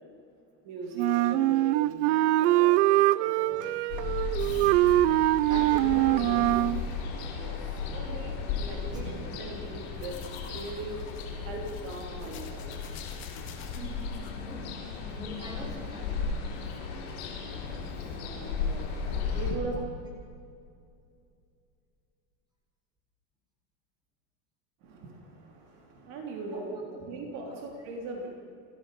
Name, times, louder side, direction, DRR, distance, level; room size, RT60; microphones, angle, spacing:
voice 1, 0.6-3.8 5.5-6.4 7.3-7.6 7.9-10.2 10.5-11.0 11.5-12.7 18.2-19.8 24.8-26.7 27.1-28.3, right 2 dB, 50° right, 2 dB, 3.1 m, -40 dB
Wind instrument woodwind instrument, 1.0-6.8, right 16 dB, 85° right, 0.6 m, -23 dB
Ocean, 3.9-19.5, left 5 dB, 65° left, 6.7 m, -35 dB
voice 2, 4.4-5.0 5.4-6.0 6.2-6.7 8.6-9.2 13.7-14.1 14.5-16.3 18.0-18.2 26.0-26.1 26.5-27.1 27.5-27.6, equal, 10° right, -1 dB, 4.1 m, -44 dB
sound 1, 10.0-14.3, left 8 dB, 35° left, 2.3 m, -50 dB
29.0 x 13.5 x 6.7 m, 2.4 s
cardioid pair, 180°, 34 cm